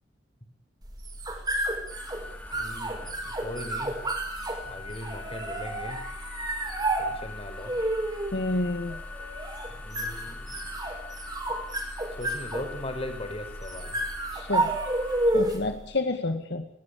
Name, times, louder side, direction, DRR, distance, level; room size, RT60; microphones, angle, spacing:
sound 1, 0.8-15.7, right 1 dB, 25° right, 5.9 m, -31 dB
sound 2, 1.9-15.3, left 4 dB, 10° left, 4.0 m, -44 dB
voice 1, 2.5-3.9 4.7-6.0 7.0-7.7 9.7-10.7 12.2-14.0, left 1 dB, 30° left, 7 dB, 5.5 m, -39 dB
voice 2, 8.3-9.0 14.3-14.8 15.3-16.7, left 2 dB, 65° left, 6 dB, 2.0 m, -29 dB
22.0 x 19.0 x 8.7 m, 0.68 s
head